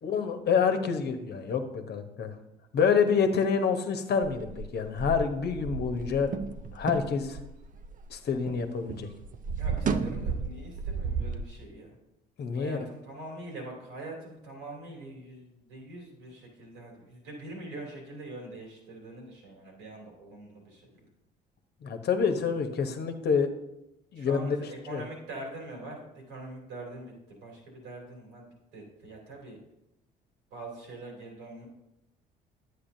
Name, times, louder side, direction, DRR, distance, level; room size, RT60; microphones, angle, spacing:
voice 1, 0.0-2.3 2.7-6.3 6.7-7.4 8.1-9.1 12.4-12.8 21.8-23.5 24.1-24.6 24.9-25.0, left 6 dB, 50° left, 7 dB, 1.1 m, -27 dB
sound 1, 4.2-8.6 8.9-11.4, right 5 dB, 40° right, 0.6 m, -33 dB
voice 2, 9.6-12.0 12.6-20.9 24.1-28.5 28.7-29.6 30.5-31.6, right 2 dB, 80° right, -1 dB, 3.0 m, -43 dB
10.0 x 8.2 x 2.7 m, 0.89 s
hypercardioid pair, 55°, 21 cm